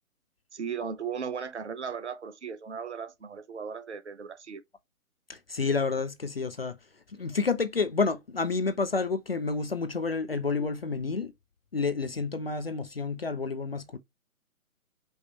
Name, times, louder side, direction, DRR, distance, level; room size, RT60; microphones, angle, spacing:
voice 1, 0.5-4.6, right 6 dB, 50° right, 0.9 m, -36 dB
voice 2, 5.3-6.8 7.2-11.3 11.7-14.0, left 4 dB, 45° left, 0.4 m, -29 dB
5.2 x 3.0 x 3.2 m
figure-of-eight pair, 135°, 43 cm